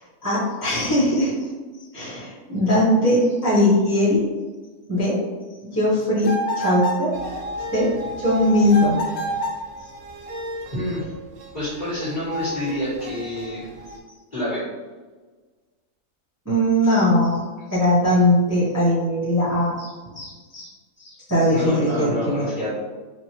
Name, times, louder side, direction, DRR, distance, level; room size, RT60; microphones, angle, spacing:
voice 1, 0.2-1.3 1.9-4.3 4.9-5.2 5.7-7.1 7.7-9.0 16.4-17.4 17.7-20.7 21.0-22.4, left 1 dB, 15° right, -11 dB, 1.2 m, -20 dB
sound 1, 6.2-7.1 8.7-9.7, right 1 dB, 70° left, 1.1 m, -26 dB
sound 2, 7.1-14.0, left 1 dB, 65° right, 1.0 m, -35 dB
voice 2, 10.7-11.1 11.5-13.6 14.3-14.6 18.1-18.2 21.5-22.7, equal, 30° left, -13 dB, 1.7 m, -28 dB
4.5 x 2.6 x 3.0 m, 1.3 s
omnidirectional pair, 1.6 m